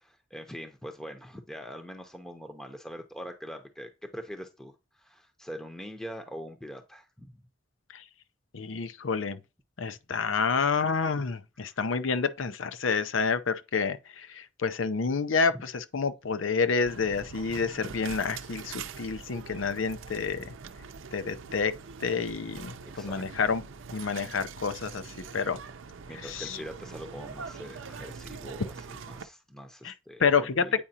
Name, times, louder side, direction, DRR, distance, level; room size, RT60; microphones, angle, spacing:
voice 1, 0.0-7.3 11.7-11.8 15.5-15.6 22.9-23.2 26.1-30.7, equal, 5° left, 0.7 m, -43 dB
voice 2, 8.5-9.4 9.8-20.5 21.1-21.7 22.0-23.6 23.9-25.6 26.3-26.6 29.8-29.9 30.2-30.7, left 5 dB, 85° left, 0.6 m, -29 dB
sound 1, 16.9-29.3, right 5 dB, 90° right, 0.6 m, -43 dB
8.7 x 4.9 x 2.8 m
head